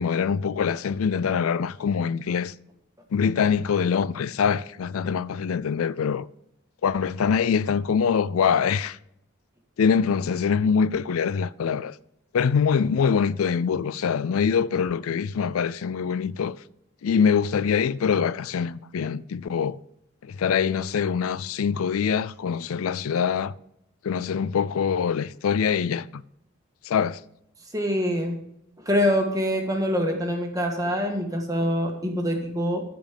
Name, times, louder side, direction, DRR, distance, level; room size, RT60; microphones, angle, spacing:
voice 1, 0.0-2.5 3.1-6.3 6.8-9.0 9.8-12.0 12.3-16.6 17.0-19.8 20.2-23.5 24.0-26.2 26.8-27.2, left 6 dB, 85° left, 0.4 m, -24 dB
voice 2, 27.7-28.4 28.8-32.8, equal, 15° right, 1.6 m, -25 dB
14.0 x 5.2 x 5.1 m
head